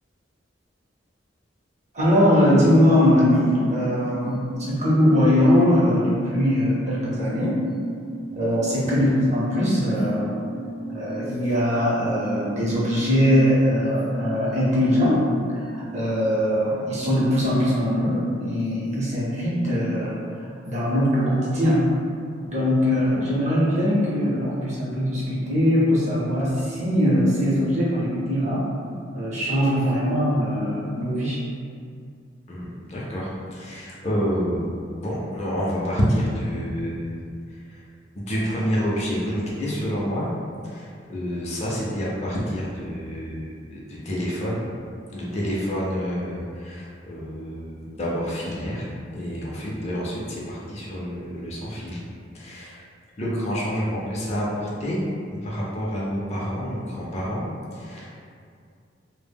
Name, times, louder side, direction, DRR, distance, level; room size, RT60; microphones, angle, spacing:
voice 1, 1.9-7.6 8.3-10.4 10.9-15.2 15.5-15.6 15.9-20.1 20.7-21.9 22.5-28.6 29.1-31.4, equal, 40° right, -7 dB, 0.7 m, -21 dB
sound 1, 2.8-17.8 18.1-18.2, right 2 dB, 75° right, 0.5 m, -36 dB
voice 2, 32.5-34.7 35.0-37.1 38.1-40.3 40.7-44.6 45.1-52.0 52.3-52.8 53.2-55.0 55.4-57.4 57.7-58.1, equal, 35° left, -5 dB, 0.4 m, -28 dB
2.0 x 2.0 x 3.4 m, 2.3 s
head